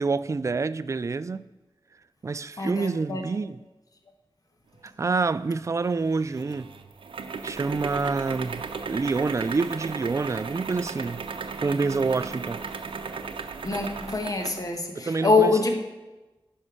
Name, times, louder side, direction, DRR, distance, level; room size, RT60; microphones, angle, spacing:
voice 1, 0.0-1.4 2.2-3.6 4.8-6.7 7.4-11.3 11.6-12.6 15.0-15.6, right 4 dB, 35° right, 0.3 m, -27 dB
voice 2, 2.6-3.2 13.6-15.7, left 3 dB, 45° left, 1.3 m, -24 dB
sound 1, 5.9-14.7, right 5 dB, 85° right, 0.7 m, -36 dB
9.7 x 5.5 x 6.3 m
wide cardioid pair, 85°, 9 cm